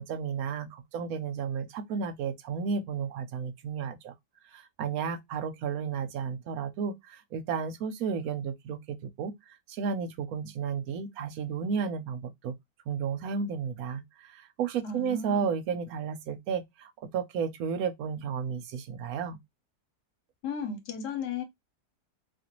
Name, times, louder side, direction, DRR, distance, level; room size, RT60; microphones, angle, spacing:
voice 1, 0.0-4.1 4.5-12.5 12.9-19.4, right 6 dB, 70° right, 1.0 m, -33 dB
voice 2, 14.8-15.5 20.4-21.4, left 5 dB, 80° left, 1.4 m, -34 dB
2.8 x 2.5 x 2.9 m
omnidirectional pair, 1.7 m